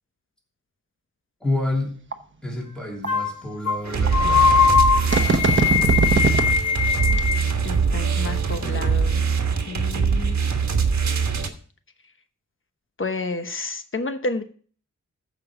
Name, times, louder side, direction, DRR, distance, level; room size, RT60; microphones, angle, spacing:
voice 1, 1.4-1.9 2.4-4.6, left 2 dB, 5° left, -2 dB, 3.1 m, -28 dB
sound 1, 2.1-2.2 3.0-3.1 4.1-4.2 5.1-6.5 7.1-7.2, right 4 dB, 40° right, 1.1 m, -20 dB
sound 2, 3.1-3.3 3.7-3.8 4.1-7.5, left 6 dB, 70° left, 1.6 m, -20 dB
sound 3, 3.8-11.5, right 5 dB, 60° right, 1.4 m, -23 dB
voice 2, 7.6-9.2 9.7-10.4 13.0-14.4, left 3 dB, 40° left, 8 dB, 1.0 m, -30 dB
14.5 x 5.5 x 4.9 m, 0.43 s
wide cardioid pair, 110°, 30 cm